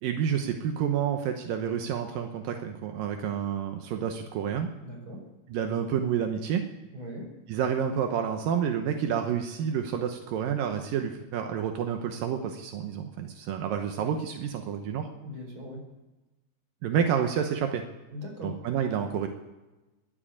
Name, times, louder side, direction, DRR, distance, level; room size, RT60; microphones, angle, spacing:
voice 1, 0.0-4.7 5.5-6.7 7.5-15.1 16.8-17.8 18.4-19.3, right 8 dB, 80° right, 5 dB, 2.6 m, -29 dB
voice 2, 4.8-5.2 6.9-7.3 13.9-14.2 15.2-15.8 18.1-18.6, left 1 dB, 25° right, 0 dB, 5.0 m, -40 dB
21.0 x 7.6 x 8.5 m, 1.1 s
omnidirectional pair, 4.0 m